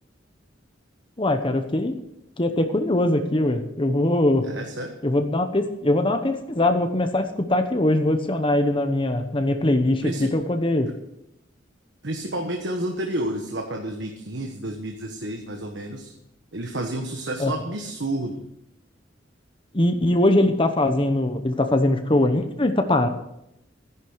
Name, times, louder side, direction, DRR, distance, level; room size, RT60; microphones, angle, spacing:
voice 1, 1.2-2.0 2.4-4.5 5.0-10.9 17.4-17.5 19.7-23.1, left 1 dB, 25° left, 7 dB, 1.0 m, -21 dB
voice 2, 4.4-4.9 10.0-10.3 10.9-11.0 12.0-16.1 16.5-18.4, right 1 dB, 65° right, 3 dB, 1.4 m, -30 dB
14.0 x 10.5 x 6.3 m, 0.82 s
head